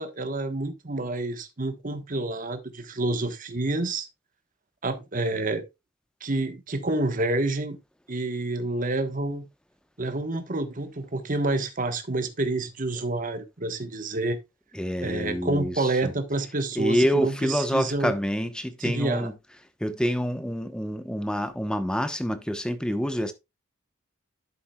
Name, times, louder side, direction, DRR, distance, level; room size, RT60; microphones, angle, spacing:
voice 1, 0.0-4.1 4.8-5.7 6.2-7.8 8.1-9.5 10.0-14.4 15.0-18.1 18.8-19.3, right 2 dB, 40° right, 1.2 m, -28 dB
voice 2, 14.7-16.1 16.8-19.3 19.8-23.3, equal, 5° left, 0.9 m, -27 dB
11.0 x 7.3 x 2.3 m
head